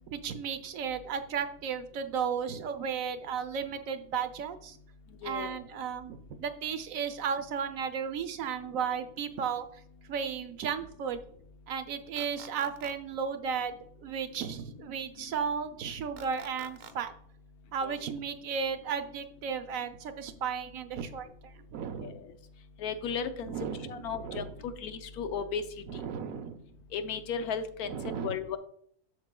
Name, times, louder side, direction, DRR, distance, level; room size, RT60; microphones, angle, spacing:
voice 1, 0.1-4.8 5.2-9.7 10.1-11.2 11.7-17.1 17.7-22.2 23.5-24.5 25.9-26.6 27.9-28.4, right 7 dB, 70° right, 8 dB, 1.0 m, -34 dB
voice 2, 5.2-5.6 17.8-18.0 22.0-22.2 22.8-23.5 23.9-25.6 26.9-28.6, left 6 dB, 85° left, 9 dB, 1.2 m, -35 dB
sound 1, 12.2-12.9 16.2-16.9, right 6 dB, 90° right, 0.4 m, -48 dB
7.8 x 6.7 x 2.2 m, 0.63 s
omnidirectional pair, 1.6 m